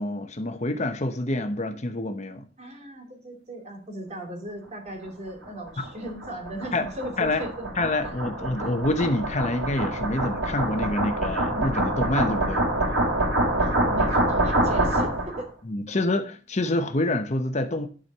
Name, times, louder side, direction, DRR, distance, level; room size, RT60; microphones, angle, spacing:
voice 1, 0.0-2.4 5.8-5.9 6.7-6.8 7.2-7.4 7.8-12.6 15.7-17.9, left 2 dB, 40° left, 0.9 m, -27 dB
voice 2, 2.6-7.7 8.0-8.1 13.6-15.5 15.9-16.0, right 1 dB, 35° right, 2.8 m, -37 dB
sound 1, 5.4-15.4, right 1 dB, 90° right, 3.8 m, -26 dB
11.5 x 4.5 x 6.7 m
head